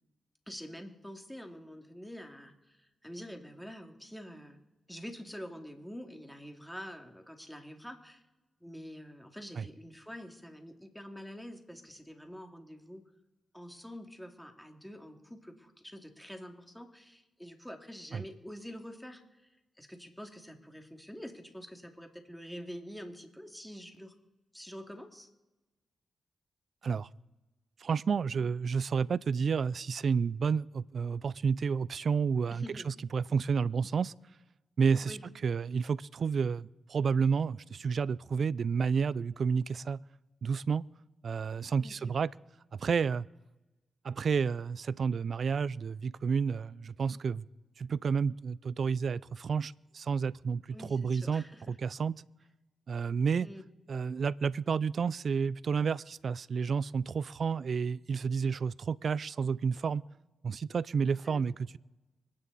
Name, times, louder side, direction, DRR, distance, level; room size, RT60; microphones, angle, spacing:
voice 1, 0.5-4.6 4.9-8.2 8.6-13.0 13.5-19.2 19.8-24.1 24.5-25.3 32.5-32.9 35.0-35.2 41.8-42.2 50.7-51.8 53.4-53.6 61.2-61.6, equal, 5° left, 4 dB, 2.5 m, -46 dB
voice 2, 27.8-34.1 34.8-35.2 35.4-40.0 40.4-40.8 41.2-42.3 42.7-43.3 44.0-47.5 47.8-50.6 50.9-52.1 52.9-53.5 53.9-60.0 60.4-61.8, right 6 dB, 65° right, 22 dB, 0.4 m, -30 dB
25.0 x 9.7 x 4.1 m, 1.1 s
supercardioid pair, 45°, 0 cm